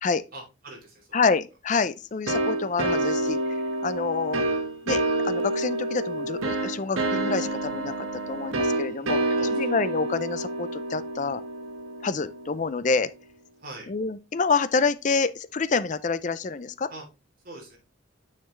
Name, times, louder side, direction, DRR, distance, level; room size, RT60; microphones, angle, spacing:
voice 1, 0.3-1.2 3.3-3.5 8.7-9.6 13.6-13.9 16.9-17.0 17.4-17.8, right 2 dB, 45° right, 3.1 m, -44 dB
voice 2, 1.1-3.4 3.8-4.5 4.9-11.4 12.0-13.1 13.9-16.9, left 4 dB, 40° left, 0.5 m, -27 dB
sound 1, 2.3-12.7, right 2 dB, 85° right, 1.3 m, -28 dB
7.0 x 5.9 x 3.1 m
head